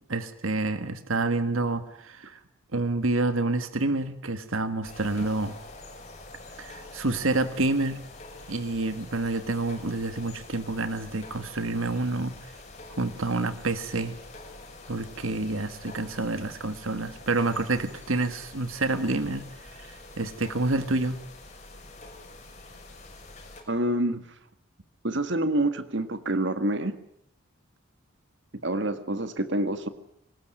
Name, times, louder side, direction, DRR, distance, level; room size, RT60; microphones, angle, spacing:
voice 1, 0.1-2.4 2.7-5.6 6.6-8.0 8.5-12.5 13.0-14.2 14.9-21.2, right 2 dB, 75° right, 11 dB, 1.6 m, -28 dB
sound 1, 4.8-23.6, left 2 dB, 35° left, 6.1 m, -46 dB
voice 2, 23.7-24.2 25.0-27.0 28.6-29.9, right 1 dB, 55° right, 10 dB, 1.8 m, -27 dB
23.5 x 20.0 x 9.2 m, 0.72 s
head